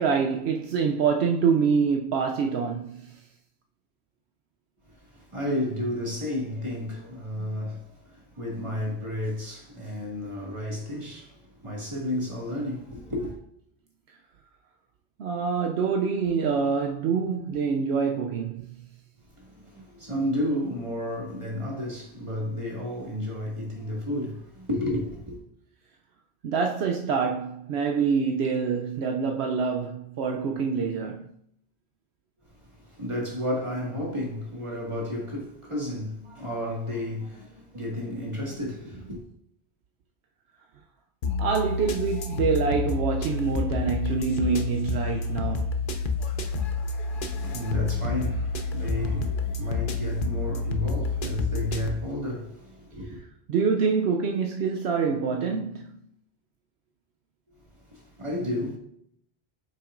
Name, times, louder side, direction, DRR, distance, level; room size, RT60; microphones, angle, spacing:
voice 1, 0.0-3.2 15.2-18.7 26.4-31.3 41.4-45.7 53.5-56.0, right 5 dB, 75° right, 0.9 m, -26 dB
voice 2, 4.9-13.4 19.4-25.4 32.6-39.2 47.0-53.2 57.9-58.8, left 1 dB, 30° right, 1.9 m, -32 dB
sound 1, 41.2-51.9, left 3 dB, 55° left, 0.8 m, -29 dB
8.1 x 5.9 x 2.5 m
omnidirectional pair, 1.1 m